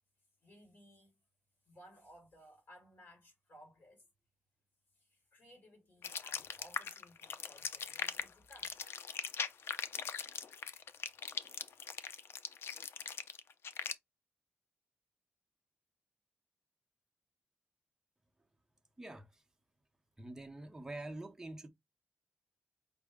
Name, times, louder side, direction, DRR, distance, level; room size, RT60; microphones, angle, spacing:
voice 1, 0.4-1.2 1.7-4.1 5.0-8.8 11.0-11.1 12.0-12.1, equal, 55° left, 2.4 m, -60 dB
sound 1, 6.0-13.9, left 7 dB, 80° left, 0.4 m, -40 dB
voice 2, 19.0-19.4 20.2-21.7, right 2 dB, 15° right, 0.6 m, -46 dB
5.2 x 2.0 x 3.5 m
wide cardioid pair, 130°, 4 cm